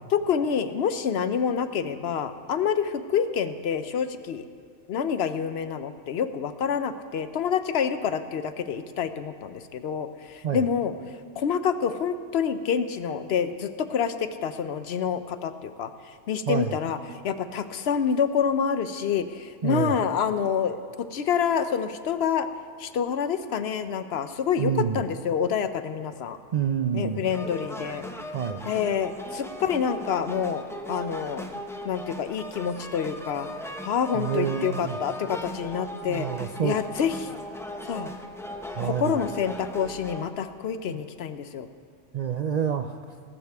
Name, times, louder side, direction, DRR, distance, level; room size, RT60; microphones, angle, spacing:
voice 1, 0.1-4.4 4.9-10.9 11.4-22.5 22.8-26.4 26.9-28.0 28.7-31.5 31.8-33.5 33.8-37.3 37.9-38.1 38.8-41.7, left 7 dB, 65° left, 11 dB, 0.8 m, -27 dB
voice 2, 19.6-19.9 24.6-25.0 26.5-27.2 28.3-28.7 34.1-35.0 36.0-36.8 38.8-39.2 40.9-41.0 42.1-43.1, right 8 dB, 60° right, 7 dB, 0.4 m, -28 dB
sound 1, 27.3-40.3, equal, 5° left, 0.6 m, -38 dB
18.5 x 13.0 x 3.5 m, 2.3 s
omnidirectional pair, 1.2 m